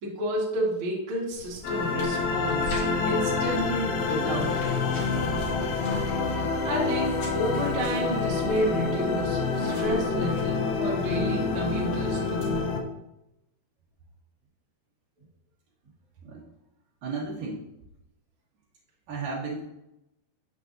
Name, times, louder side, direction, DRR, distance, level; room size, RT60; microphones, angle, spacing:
voice 1, 0.0-4.9 6.6-12.5, equal, 45° right, -5 dB, 2.1 m, -31 dB
sound 1, 1.3-12.6, equal, 55° left, 3.2 m, -43 dB
sound 2, 1.6-12.8, left 4 dB, 80° left, 2.6 m, -27 dB
voice 2, 17.0-17.6 19.1-19.6, right 4 dB, 65° right, -6 dB, 2.9 m, -33 dB
7.7 x 6.9 x 2.6 m, 0.88 s
omnidirectional pair, 4.4 m